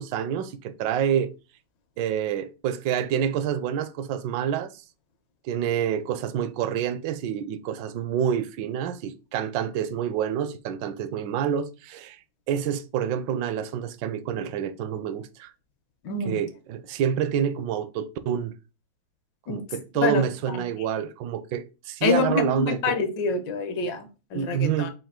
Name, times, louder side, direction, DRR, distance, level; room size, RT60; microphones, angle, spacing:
voice 1, 0.0-1.3 2.0-4.7 5.4-12.2 12.5-15.5 16.3-18.5 19.5-23.0 24.3-24.9, right 9 dB, 75° right, 1.2 m, -27 dB
voice 2, 16.0-16.4 19.5-19.6 20.0-20.2 22.0-24.9, left 4 dB, 70° left, 1.4 m, -26 dB
5.4 x 2.6 x 3.6 m
omnidirectional pair, 2.2 m